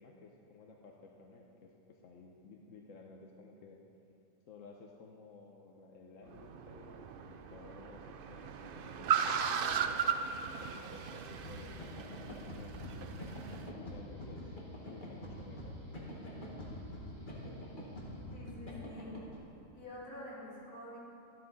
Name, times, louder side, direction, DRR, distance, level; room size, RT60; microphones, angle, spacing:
voice 1, 0.0-3.8 4.5-10.2 10.4-13.1 13.7-15.8, left 4 dB, 65° left, 1 dB, 1.2 m, -55 dB
Car, 6.3-13.7, right 7 dB, 75° right, 0.5 m, -37 dB
Guitar, 10.5-18.2, equal, 40° right, 3.7 m, -60 dB
sound 1, 11.3-19.4, left 1 dB, 35° left, 2.0 m, -45 dB
voice 2, 18.3-19.2 19.7-21.0, left 1 dB, 80° left, -8 dB, 3.8 m, -47 dB
13.0 x 12.5 x 4.1 m, 2.6 s
omnidirectional pair, 1.6 m